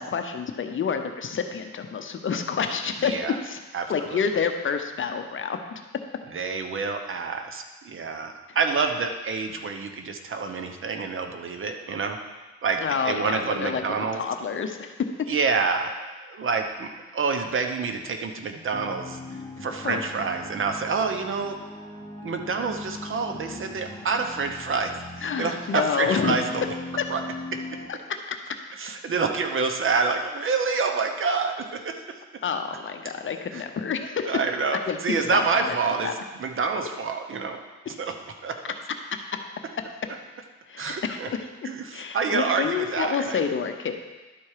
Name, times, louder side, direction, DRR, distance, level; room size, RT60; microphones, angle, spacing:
voice 1, 0.0-3.1 3.4-3.6 3.9-5.6 12.8-14.9 19.8-20.0 25.2-26.4 27.0-27.1 27.9-28.0 32.4-34.3 34.9-35.8 36.0-36.1 40.7-41.2 41.9-43.9, left 6 dB, 40° left, 6 dB, 0.8 m, -28 dB
voice 2, 3.0-3.4 3.7-4.2 6.3-12.2 12.6-14.2 15.3-15.9 16.3-21.6 22.2-26.6 27.1-27.2 27.5-27.6 28.8-32.2 33.5-33.6 34.3-37.6 38.0-38.2 38.4-38.6 40.1-40.2 40.8-41.3 41.6-43.4, right 4 dB, 45° right, 5 dB, 0.9 m, -27 dB
sound 1, 18.7-27.9, left 2 dB, 10° left, 1.4 m, -39 dB
11.5 x 4.3 x 4.9 m, 1.2 s
cardioid pair, 90°, 30 cm